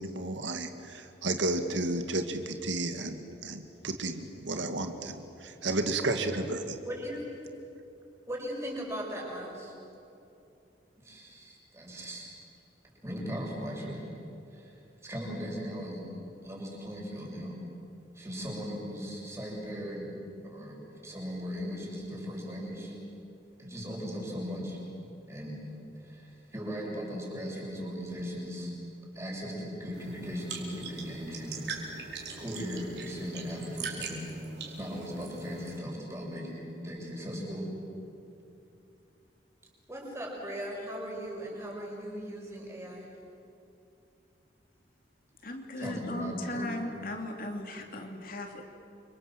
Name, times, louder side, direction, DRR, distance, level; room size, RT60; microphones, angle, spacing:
voice 1, 0.0-6.8, right 2 dB, 85° right, 6 dB, 2.1 m, -32 dB
voice 2, 6.8-7.2 8.3-9.7 11.0-12.3 13.0-14.0 14.5-14.7 15.0-16.1 16.4-17.6 18.2-20.1 20.4-22.9 23.6-24.8 25.3-25.6 26.0-28.7 29.2-31.7 32.3-34.2 34.8-37.7 39.9-43.1 45.8-46.7, equal, 15° right, -2 dB, 6.8 m, -38 dB
sound 1, 29.9-35.8, right 5 dB, 65° right, 4.8 m, -42 dB
voice 3, 45.4-48.6, left 1 dB, 50° left, 3 dB, 3.0 m, -37 dB
29.5 x 25.5 x 7.8 m, 2.8 s
head